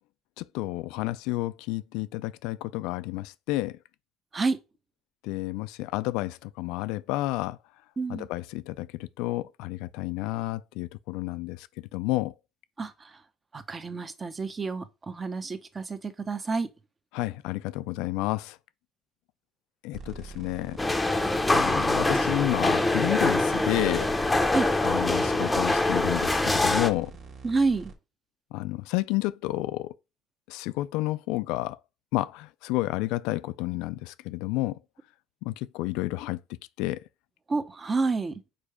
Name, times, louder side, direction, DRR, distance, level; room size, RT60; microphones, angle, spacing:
voice 1, 0.4-3.8 5.2-7.6 8.1-11.7 11.9-12.3 17.1-18.6 19.8-20.8 21.5-24.1 24.8-27.1 28.5-29.9 30.5-31.8 32.1-34.8 35.4-36.4 36.8-37.0, left 18 dB, 80° left, 0.3 m, -30 dB
voice 2, 8.0-8.3 12.8-13.2 13.5-16.7 24.5-24.7 27.4-27.9 37.5-38.4, right 4 dB, 25° right, 0.8 m, -29 dB
sound 1, 19.9-27.9, right 4 dB, 50° right, 1.7 m, -44 dB
sound 2, 20.8-26.9, left 2 dB, 10° left, 0.8 m, -24 dB
5.0 x 4.7 x 4.9 m
cardioid pair, 115°, 0 cm